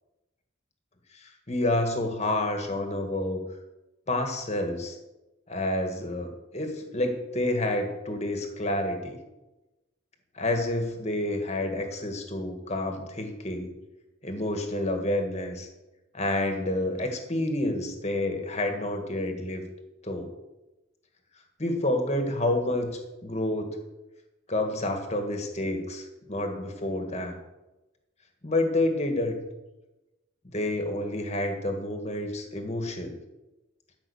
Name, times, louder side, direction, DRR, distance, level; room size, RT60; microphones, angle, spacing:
voice 1, 1.2-3.4 4.1-5.0 5.5-9.2 10.4-13.7 14.2-15.7 16.1-19.6 20.0-20.3 21.6-22.9 23.2-23.7 24.5-27.4 28.4-29.4 30.5-33.1, left 1 dB, 35° left, 4 dB, 1.7 m, -29 dB
13.5 x 5.7 x 7.1 m, 1.0 s
head